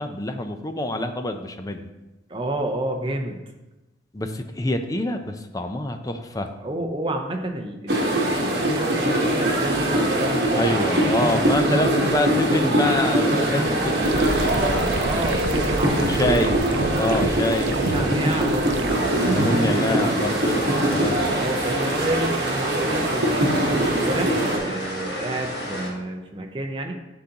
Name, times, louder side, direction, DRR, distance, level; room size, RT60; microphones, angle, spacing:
voice 1, 0.0-1.9 4.1-6.5 10.5-15.3 16.0-16.6 17.0-18.5 19.3-21.3, left 1 dB, 20° left, 6 dB, 0.5 m, -26 dB
voice 2, 2.3-3.4 6.6-11.0 15.0-16.4 16.7-19.4 19.7-20.3 21.3-26.9, right 1 dB, 25° right, 3 dB, 0.7 m, -30 dB
sound 1, 7.9-24.6, right 1 dB, 60° right, 1.2 m, -22 dB
sound 2, 14.0-19.6, right 3 dB, 85° right, 0.5 m, -28 dB
sound 3, 18.9-25.9, equal, 60° left, 1.4 m, -32 dB
11.5 x 3.9 x 2.9 m, 1.0 s
head